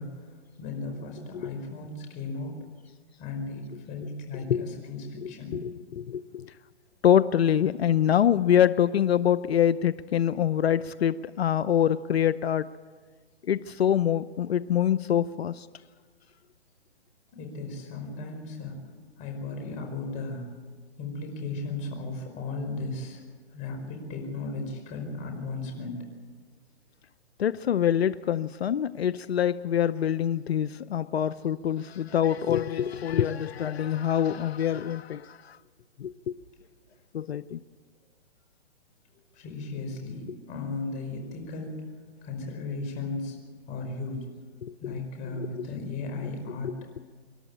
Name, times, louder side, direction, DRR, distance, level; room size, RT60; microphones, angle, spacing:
voice 1, 0.0-2.7 3.2-5.7 17.3-20.6 21.0-23.2 23.5-26.1 39.3-41.9 42.2-43.4 43.7-44.4 44.8-46.9, left 3 dB, 25° left, 3 dB, 5.2 m, -36 dB
voice 2, 5.2-6.5 7.0-12.7 13.5-15.7 27.4-35.6 36.0-36.1 37.1-37.6 44.6-44.9 45.4-45.5 46.6-46.7, left 9 dB, 65° left, 16 dB, 0.7 m, -25 dB
26.5 x 12.0 x 8.7 m, 1.5 s
hypercardioid pair, 150°, 33 cm